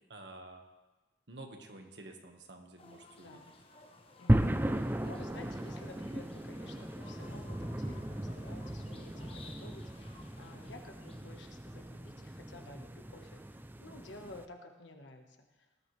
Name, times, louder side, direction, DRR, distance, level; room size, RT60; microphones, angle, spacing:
voice 1, 0.1-0.6 1.3-3.4, right 2 dB, 70° right, 3 dB, 1.6 m, -50 dB
sound 1, 2.8-12.1, left 3 dB, 30° left, 1.1 m, -57 dB
voice 2, 4.2-4.5 5.0-13.4 13.8-15.4, left 2 dB, 85° left, 3 dB, 1.5 m, -52 dB
sound 2, 4.3-14.5, right 1 dB, 10° right, 0.5 m, -36 dB
18.5 x 12.0 x 3.4 m, 1.1 s
head